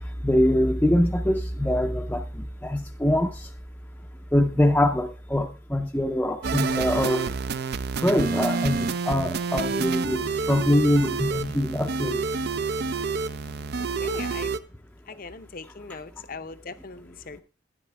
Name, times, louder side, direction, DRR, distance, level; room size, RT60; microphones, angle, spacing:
voice 1, 0.2-3.5 4.3-7.3 8.0-10.2 10.5-12.2, left 1 dB, 5° left, 0.5 m, -23 dB
sound 1, 6.4-14.6, right 4 dB, 55° right, 0.5 m, -28 dB
voice 2, 14.0-14.5 15.1-17.4, left 4 dB, 45° left, 0.6 m, -40 dB
11.0 x 10.0 x 3.4 m
head